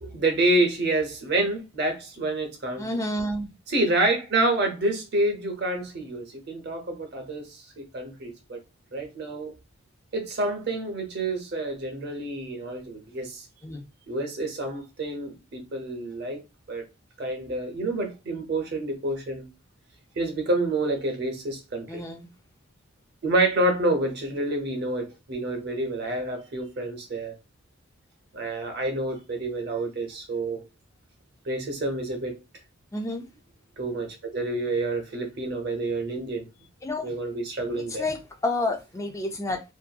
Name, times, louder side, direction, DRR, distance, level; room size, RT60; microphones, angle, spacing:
voice 1, 0.0-2.9 3.7-7.5 7.8-8.6 8.9-9.5 10.1-13.4 14.1-16.4 16.7-16.8 17.2-19.5 20.2-22.0 23.2-27.3 28.3-30.6 31.5-32.4 33.8-36.5 37.0-38.0, right 2 dB, 50° right, 0.7 m, -28 dB
voice 2, 2.8-3.5 13.6-13.9 21.9-22.3 32.9-33.3 36.8-37.1 37.9-39.6, left 2 dB, 15° left, 0.3 m, -29 dB
2.6 x 2.5 x 2.3 m
head